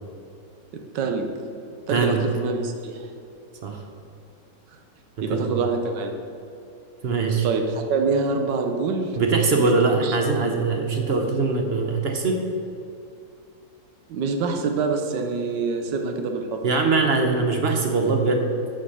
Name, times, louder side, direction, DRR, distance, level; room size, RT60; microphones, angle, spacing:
voice 1, 0.9-1.3 1.9-3.1 4.7-4.8 5.2-6.1 7.4-9.2 9.5-9.7 10.0-10.2 14.1-16.6, right 4 dB, 80° right, 4 dB, 1.4 m, -25 dB
voice 2, 7.0-7.5 9.2-12.4 16.6-18.5, right 4 dB, 50° right, 3 dB, 0.8 m, -22 dB
6.5 x 5.6 x 6.4 m, 2.6 s
omnidirectional pair, 1.9 m